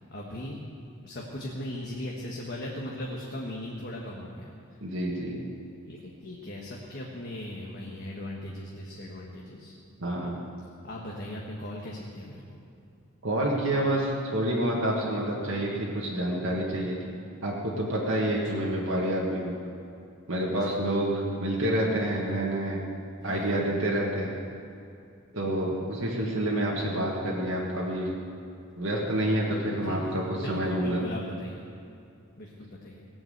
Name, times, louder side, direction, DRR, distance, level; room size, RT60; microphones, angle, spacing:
voice 1, 0.1-0.6 1.0-4.5 5.8-9.7 10.8-12.6 18.3-18.6 20.5-20.8 23.2-23.7 25.5-25.8 29.7-31.7 32.4-33.0, left 1 dB, 45° left, -3 dB, 1.5 m, -39 dB
voice 2, 4.8-5.4 10.0-10.4 13.2-17.0 17.4-19.5 20.3-22.8 23.2-24.4 25.3-28.1 28.8-31.0, right 1 dB, 65° right, -4 dB, 2.0 m, -28 dB
18.5 x 7.7 x 8.1 m, 2.5 s
head